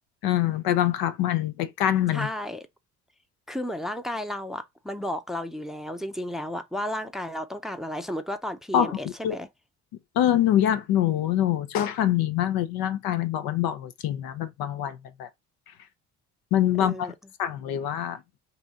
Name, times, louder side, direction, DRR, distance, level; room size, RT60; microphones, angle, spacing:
voice 1, 0.2-2.3 8.7-9.0 9.2-9.4 10.2-15.3 16.5-17.1 17.4-18.2, left 11 dB, 60° left, 0.7 m, -24 dB
voice 2, 2.1-2.6 3.5-9.5 16.8-17.1, left 1 dB, ahead, 0.6 m, -33 dB
4.0 x 2.8 x 3.6 m
hypercardioid pair, 45°, 40 cm